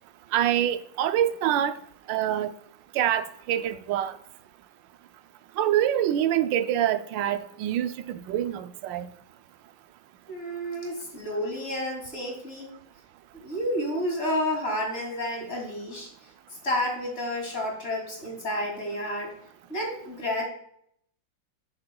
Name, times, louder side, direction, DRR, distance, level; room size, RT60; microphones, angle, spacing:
voice 1, 0.3-1.7 2.1-2.5 2.9-4.2 5.6-9.1, right 11 dB, 85° right, 1.3 m, -25 dB
voice 2, 10.3-12.7 13.3-16.1 16.6-19.3 19.7-20.5, left 1 dB, 35° left, 3.1 m, -30 dB
12.5 x 6.5 x 2.3 m
omnidirectional pair, 2.0 m